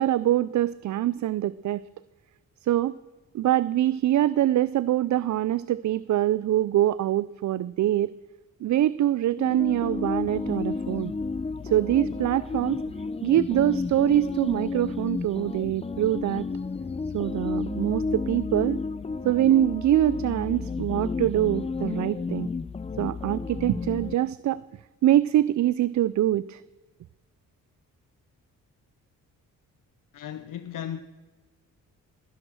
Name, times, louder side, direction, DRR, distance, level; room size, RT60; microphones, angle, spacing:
voice 1, 0.0-1.8 2.6-3.0 3.3-8.1 8.6-11.1 11.6-12.8 13.2-16.5 17.1-18.8 19.2-22.5 23.0-24.6 25.0-26.6, right 13 dB, 60° right, 0.4 m, -24 dB
sound 1, 9.4-24.1, left 4 dB, 20° left, 0.5 m, -32 dB
voice 2, 30.1-31.0, left 10 dB, 65° left, 0.7 m, -35 dB
19.5 x 11.0 x 6.3 m
cardioid pair, 65°, 34 cm